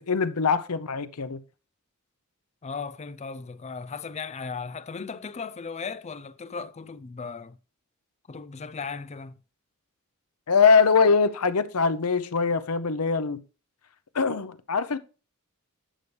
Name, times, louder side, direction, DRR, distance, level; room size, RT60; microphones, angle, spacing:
voice 1, 0.0-1.4 10.5-13.4 14.1-15.0, left 5 dB, 85° left, 0.7 m, -22 dB
voice 2, 2.6-7.6 8.3-9.4, left 5 dB, 30° left, 0.5 m, -36 dB
11.5 x 6.7 x 3.3 m
head